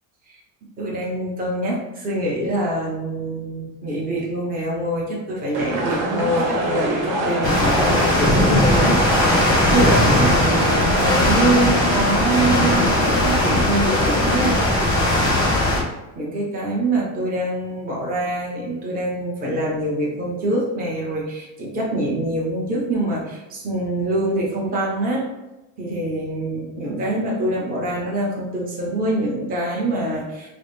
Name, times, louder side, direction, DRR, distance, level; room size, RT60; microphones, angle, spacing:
voice 1, 0.8-14.8 16.2-25.3 25.8-30.5, right 1 dB, 25° right, -4 dB, 0.8 m, -24 dB
sound 1, 5.5-14.9, right 1 dB, 70° right, 1.2 m, -26 dB
sound 2, 7.4-15.8, left 1 dB, 10° left, 0.7 m, -18 dB
4.7 x 2.0 x 3.1 m, 1.0 s
cardioid pair, 175°, 38 cm